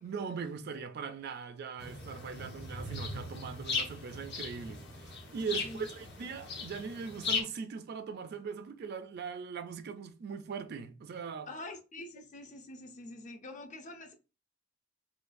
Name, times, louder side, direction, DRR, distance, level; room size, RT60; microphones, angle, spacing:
voice 1, 0.0-11.5, right 5 dB, 55° right, 0.4 m, -40 dB
sound 1, 1.8-7.4, left 4 dB, 60° left, 0.9 m, -38 dB
voice 2, 11.5-14.1, left 2 dB, 40° left, 0.6 m, -45 dB
4.5 x 2.3 x 2.5 m
head